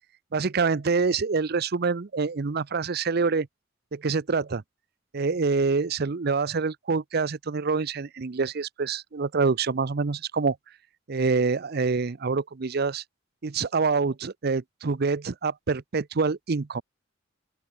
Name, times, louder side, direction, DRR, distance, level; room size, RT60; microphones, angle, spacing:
voice 1, 0.3-3.5 3.9-4.6 5.1-10.6 11.1-13.0 13.4-16.8, right 4 dB, 55° right, 0.6 m, -26 dB
open air
head